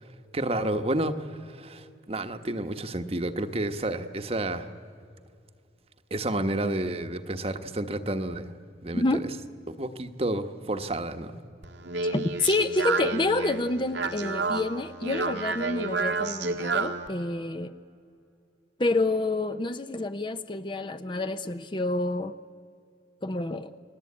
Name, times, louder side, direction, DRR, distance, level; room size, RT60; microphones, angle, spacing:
voice 1, 0.3-4.7 6.1-8.5 8.8-9.0 9.7-11.4, right 1 dB, 35° right, 8 dB, 1.1 m, -30 dB
Speech, 11.6-17.1, right 4 dB, 90° right, 2.0 m, -30 dB
voice 2, 12.0-17.7 18.8-22.4 23.2-23.8, left 2 dB, 25° left, 10 dB, 0.7 m, -28 dB
29.5 x 21.0 x 8.6 m, 2.4 s
head